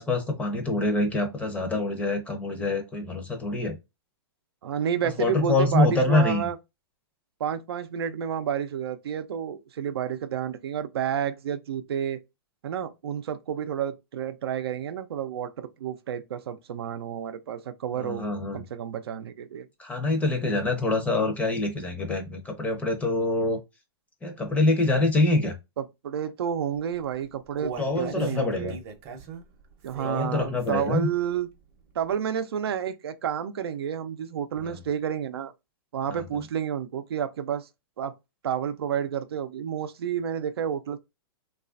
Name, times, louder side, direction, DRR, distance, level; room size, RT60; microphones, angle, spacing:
voice 1, 0.0-3.8 5.0-6.5 18.0-18.6 19.8-23.6 24.2-25.5 27.8-28.7 30.0-31.1 34.6-34.8 36.1-36.2, left 2 dB, 10° left, 0.6 m, -25 dB
voice 2, 4.6-6.6 7.4-12.2 12.6-18.2 18.5-19.7 25.8-28.8 29.8-31.5 31.9-35.5 35.9-37.7 38.0-38.1 38.4-41.0, right 8 dB, 85° right, 0.5 m, -30 dB
Human voice, 27.0-31.2 31.5-31.6 32.1-32.2, right 4 dB, 40° right, 0.7 m, -40 dB
3.1 x 2.4 x 2.4 m
hypercardioid pair, 140°, 13 cm